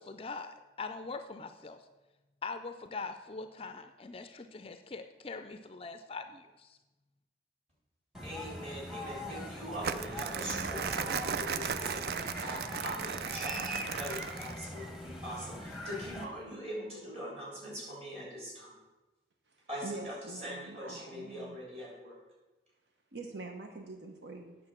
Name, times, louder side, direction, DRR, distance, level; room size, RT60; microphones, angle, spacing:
voice 1, 0.0-1.9 2.4-6.8, left 4 dB, 30° left, 9 dB, 0.4 m, -42 dB
sound 1, 8.1-16.2, left 1 dB, ahead, 0.9 m, -42 dB
voice 2, 8.2-18.7 19.7-22.2, equal, 35° right, -4 dB, 3.2 m, -42 dB
Crumpling crinkling, 9.8-14.7, right 6 dB, 55° right, 0.4 m, -36 dB
voice 3, 19.5-21.6 23.1-24.6, right 3 dB, 75° right, 4 dB, 0.9 m, -45 dB
8.8 x 6.5 x 5.9 m, 1.1 s
head